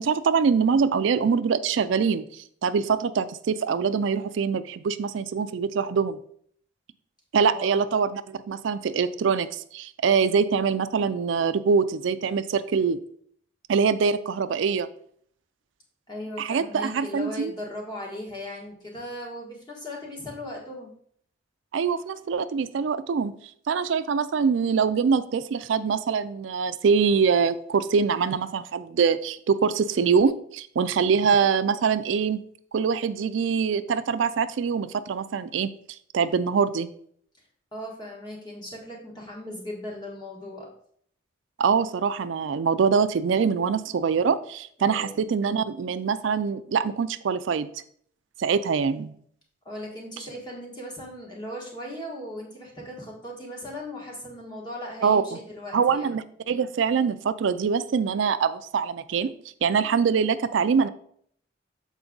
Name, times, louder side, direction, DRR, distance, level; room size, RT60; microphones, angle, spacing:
voice 1, 0.0-6.2 7.3-13.0 13.7-14.9 16.4-17.5 21.7-23.3 23.7-32.4 32.7-35.7 36.1-36.9 41.6-47.7 48.4-49.1 55.0-55.2 55.7-59.3 59.6-60.9, right 6 dB, 80° right, 12 dB, 0.4 m, -24 dB
voice 2, 7.5-7.9 16.1-20.9 37.7-40.7 44.8-45.2 49.6-56.1, left 1 dB, 20° left, -2 dB, 1.6 m, -38 dB
7.1 x 4.4 x 3.9 m, 0.62 s
head